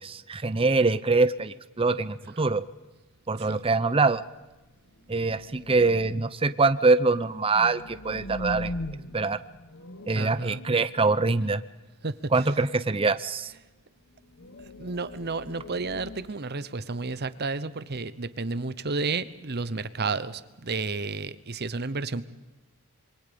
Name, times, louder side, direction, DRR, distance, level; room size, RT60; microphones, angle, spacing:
voice 1, 0.0-2.6 3.3-4.2 5.1-8.7 9.1-9.4 10.1-11.6 12.3-13.5, right 3 dB, 25° right, 13 dB, 0.7 m, -24 dB
sound 1, 4.9-6.4 7.0-11.9 13.4-13.7 14.1-17.1, left 1 dB, 55° left, 1.2 m, -41 dB
voice 2, 10.1-10.6 12.0-12.3 14.8-22.3, right 3 dB, 45° right, 15 dB, 0.9 m, -32 dB
27.0 x 23.5 x 5.3 m, 1.1 s
head